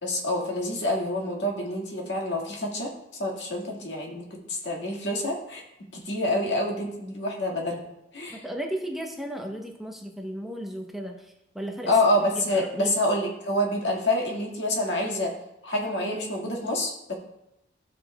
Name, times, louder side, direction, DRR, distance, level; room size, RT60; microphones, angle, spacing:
voice 1, 0.0-2.9 3.2-5.6 5.9-7.8 8.1-8.4 11.9-15.3 15.6-17.1, left 1 dB, 80° left, -1 dB, 1.8 m, -27 dB
voice 2, 8.3-11.9 12.2-12.9, right 1 dB, ahead, 1 dB, 0.7 m, -35 dB
13.5 x 6.0 x 2.2 m, 0.87 s
head